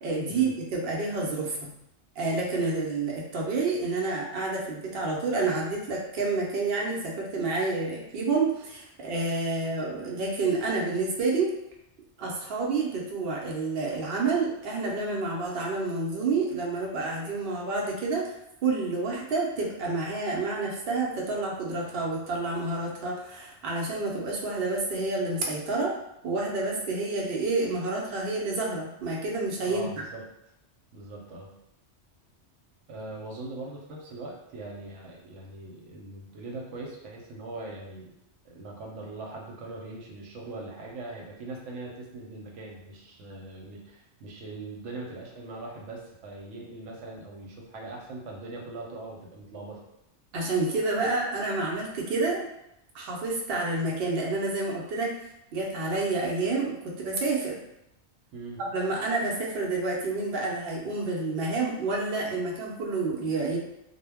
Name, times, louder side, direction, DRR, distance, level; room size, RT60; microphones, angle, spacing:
voice 1, 0.0-1.7 2.2-11.5 12.2-18.4 18.6-25.9 26.2-29.9 50.3-52.5 52.9-55.2 55.5-57.6 58.7-63.6, right 3 dB, 65° right, -2 dB, 0.8 m, -29 dB
voice 2, 29.6-30.3 30.9-31.5 32.9-38.1 38.4-49.8 58.3-58.6, right 2 dB, 85° right, -1 dB, 1.0 m, -41 dB
2.1 x 2.0 x 3.4 m, 0.82 s
omnidirectional pair, 1.2 m